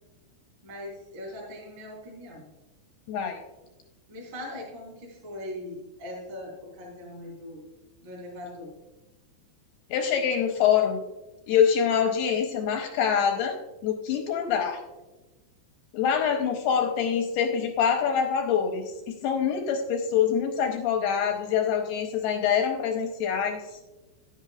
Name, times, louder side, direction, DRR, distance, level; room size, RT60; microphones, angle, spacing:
voice 1, 0.6-2.5 4.1-7.6 8.0-8.8, left 1 dB, 40° right, -4 dB, 4.5 m, -40 dB
voice 2, 3.1-3.4 9.9-11.0 11.5-13.6 13.8-14.8 15.9-23.8, left 7 dB, 80° left, 3 dB, 2.4 m, -25 dB
12.0 x 10.5 x 2.4 m, 1.1 s
omnidirectional pair, 5.3 m